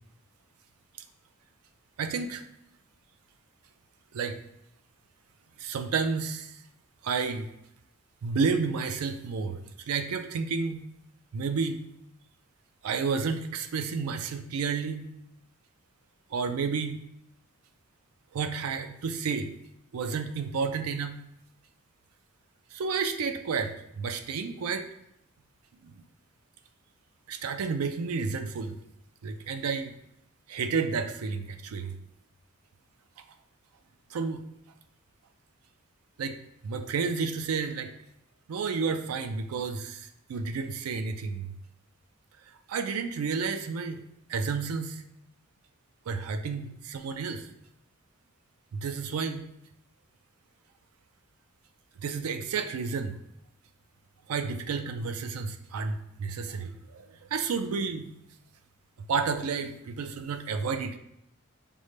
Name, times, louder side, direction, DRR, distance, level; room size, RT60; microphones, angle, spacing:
voice 1, 2.0-2.4 4.1-4.4 5.6-6.6 7.0-7.5 8.2-10.8 11.3-11.8 12.8-15.1 16.3-17.0 18.3-19.5 19.9-21.2 22.7-24.9 25.8-26.0 27.3-28.8 29.2-30.0 30.5-31.9 34.1-34.4 36.2-36.4 36.6-37.9 38.5-41.6 42.7-44.0 44.3-45.0 46.1-47.5 48.7-49.4 52.0-53.2 54.3-58.1 59.1-61.0, right 5 dB, 90° right, 7 dB, 0.4 m, -31 dB
5.2 x 2.1 x 3.1 m, 0.78 s
head